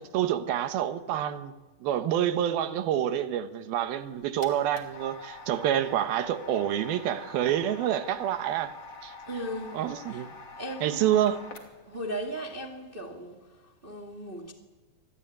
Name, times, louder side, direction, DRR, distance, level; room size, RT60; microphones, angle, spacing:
voice 1, 0.1-1.5 1.8-8.7 9.0-9.1 9.7-10.3 10.8-11.4, right 11 dB, 70° right, 2.8 m, -27 dB
sound 1, 3.9-12.0, left 3 dB, 40° left, 3.2 m, -46 dB
voice 2, 9.2-10.2 10.6-11.1 11.8-14.5, equal, 40° right, 0.7 m, -37 dB
26.0 x 20.0 x 9.4 m
omnidirectional pair, 5.0 m